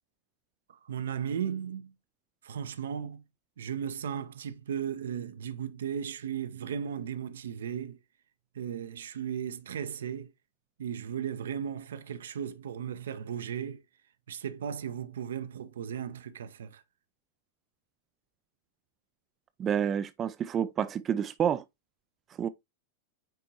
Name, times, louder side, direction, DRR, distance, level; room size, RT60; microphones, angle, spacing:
voice 1, 0.7-1.9 2.4-3.2 3.6-8.0 8.5-10.3 10.8-13.8 14.3-16.8, right 8 dB, 65° right, 0.7 m, -36 dB
voice 2, 19.6-21.6 22.4-22.5, right 8 dB, 25° right, 0.4 m, -29 dB
9.1 x 4.5 x 2.8 m
figure-of-eight pair, 90°, 0 cm